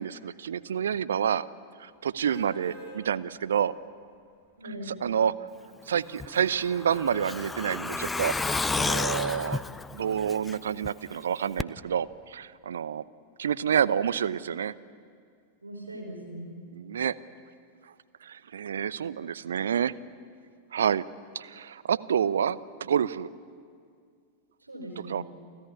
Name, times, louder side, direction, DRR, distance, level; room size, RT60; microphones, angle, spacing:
voice 1, 0.0-1.5 1.8-3.7 4.9-5.3 5.9-8.3 8.8-9.6 9.9-13.0 13.4-14.7 16.7-17.2 18.2-19.9 20.7-21.1 21.3-23.3 25.1-25.2, right 8 dB, 65° right, 17 dB, 0.6 m, -28 dB
sound 1, 2.2-3.0 3.5-3.6 6.4-7.4 7.9-8.0, left 2 dB, 40° right, 7.5 m, -44 dB
voice 2, 4.6-5.0 15.6-16.6 24.6-25.2, right 1 dB, 80° right, 1 dB, 5.1 m, -40 dB
Truck, 6.2-10.9 11.2-11.3 11.6-11.7, left 3 dB, 10° left, 0.6 m, -31 dB
29.0 x 13.5 x 9.9 m, 2.2 s
figure-of-eight pair, 90°, 0 cm